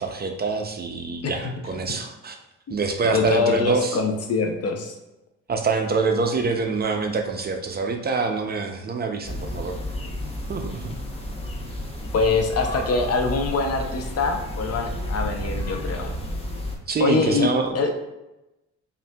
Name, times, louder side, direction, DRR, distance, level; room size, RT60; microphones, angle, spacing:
voice 1, 0.0-2.4 2.7-4.0 5.5-9.8 10.5-10.9 16.9-17.8, right 4 dB, 35° right, 4 dB, 0.4 m, -25 dB
voice 2, 3.1-4.9 12.1-16.1 17.0-17.9, left 4 dB, 55° left, 4 dB, 0.6 m, -24 dB
sound 1, 9.2-16.8, left 1 dB, 20° left, 0.7 m, -32 dB
5.2 x 2.5 x 2.2 m, 0.96 s
cardioid pair, 90°, 30 cm